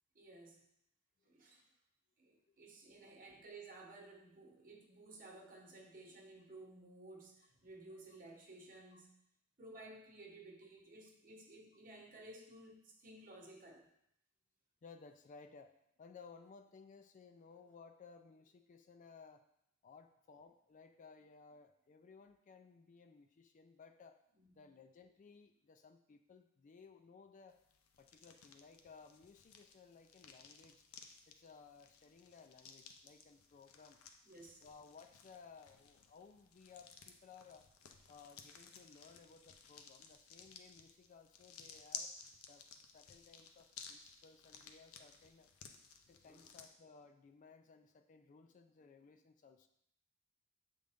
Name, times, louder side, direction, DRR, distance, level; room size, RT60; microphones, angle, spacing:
voice 1, 0.1-0.6 1.2-1.7 2.2-9.1 9.6-13.9 24.4-24.6 34.2-34.6 46.2-46.5, right 2 dB, 40° right, 0 dB, 1.1 m, -56 dB
voice 2, 1.2-1.6 2.5-2.6 3.0-3.2 8.9-9.0 14.8-19.4 19.8-24.2 24.6-27.6 28.0-30.8 31.3-34.0 34.6-37.7 38.1-42.1 42.5-45.5 46.1-49.7, left 5 dB, 35° left, 7 dB, 0.3 m, -60 dB
sound 1, 27.5-46.7, left 6 dB, 80° left, 0.6 m, -56 dB
7.6 x 3.8 x 3.5 m, 0.75 s
head